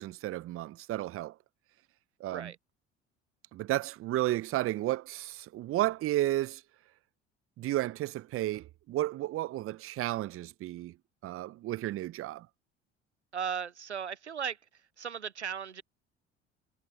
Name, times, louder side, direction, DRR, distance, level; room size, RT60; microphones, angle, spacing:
voice 1, 0.0-1.3 2.2-2.5 3.5-6.6 7.6-10.9 11.2-12.5, right 15 dB, 40° right, 0.8 m, -32 dB
voice 2, 13.3-14.6 15.0-15.8, right 7 dB, 90° right, 0.7 m, -36 dB
figure-of-eight pair, 60°, 33 cm